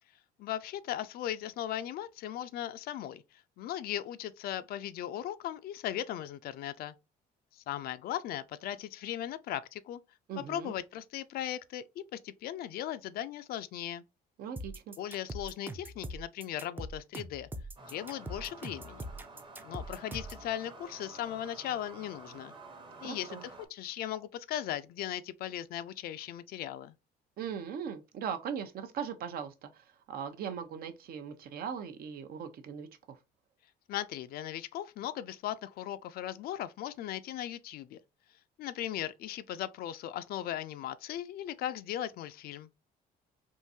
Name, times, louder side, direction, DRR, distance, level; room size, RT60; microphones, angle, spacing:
voice 1, 0.4-6.9 7.5-10.0 10.5-14.0 15.0-17.5 17.9-19.1 19.6-22.5 23.0-26.9 33.9-38.0 38.6-42.7, left 11 dB, 65° left, 0.4 m, -38 dB
voice 2, 10.3-10.7 14.4-15.0 23.0-23.4 27.4-33.2, right 7 dB, 60° right, 0.6 m, -39 dB
sound 1, 14.6-20.4, right 1 dB, 10° right, 0.4 m, -42 dB
sound 2, 17.8-23.7, right 3 dB, 30° right, 0.9 m, -50 dB
3.7 x 2.6 x 2.6 m
cardioid pair, 110°, 17 cm